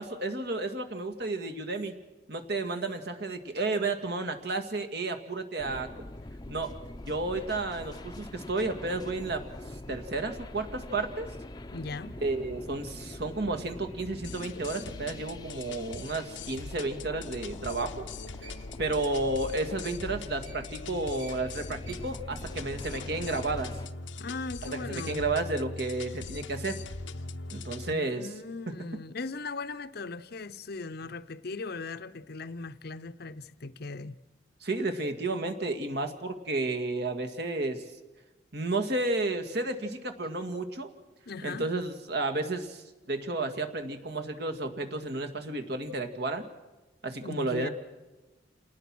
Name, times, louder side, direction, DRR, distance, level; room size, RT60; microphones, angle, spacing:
voice 1, 0.0-2.0 2.3-5.9 6.5-6.7 7.0-9.5 9.9-11.3 12.2-18.1 18.8-23.7 24.6-26.8 27.5-28.3 28.7-28.8 34.6-37.8 38.5-40.9 41.4-46.5 47.0-47.7, right 2 dB, 60° right, 2.1 m, -32 dB
sound 1, 5.6-23.9, left 1 dB, 20° left, 0.7 m, -44 dB
voice 2, 11.7-12.2 15.0-15.1 24.2-25.3 27.9-34.2 41.3-41.7 47.2-47.7, left 3 dB, 55° left, 0.8 m, -39 dB
sound 2, 14.2-27.9, left 3 dB, 90° left, 0.9 m, -41 dB
sound 3, 18.0-20.9 21.1-22.9, right 4 dB, 80° right, 5.0 m, -54 dB
28.5 x 19.0 x 6.2 m
head